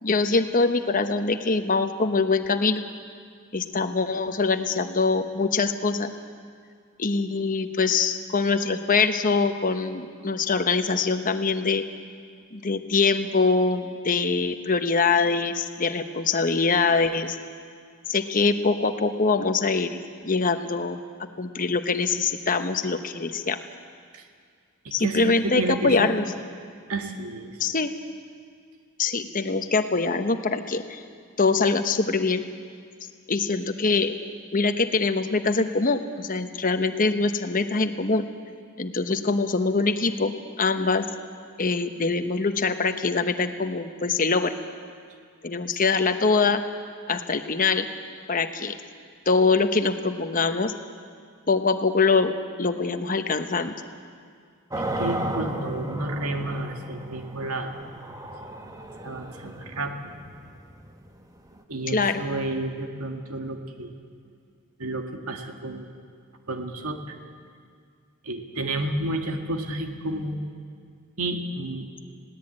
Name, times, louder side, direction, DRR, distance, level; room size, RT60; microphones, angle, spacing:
voice 1, 0.0-2.8 3.5-6.1 7.0-11.8 12.5-17.4 18.1-21.0 21.4-23.6 24.9-26.2 27.6-27.9 29.0-31.0 31.4-32.4 33.3-34.1 34.5-38.2 38.8-41.1 41.6-44.5 45.4-46.6 47.1-47.9 48.3-48.7 49.3-50.7 51.5-52.3 52.6-53.8 61.9-62.2, left 4 dB, 40° left, 8 dB, 1.0 m, -23 dB
voice 2, 24.8-26.1 26.9-27.6 55.0-57.7 59.0-59.9 61.7-63.9 64.8-65.9 66.5-67.2 68.2-70.4 71.2-71.9, right 2 dB, 85° right, 4 dB, 1.8 m, -31 dB
sound 1, 54.7-61.6, right 1 dB, 15° right, 1.2 m, -34 dB
20.5 x 17.0 x 8.8 m, 2.1 s
head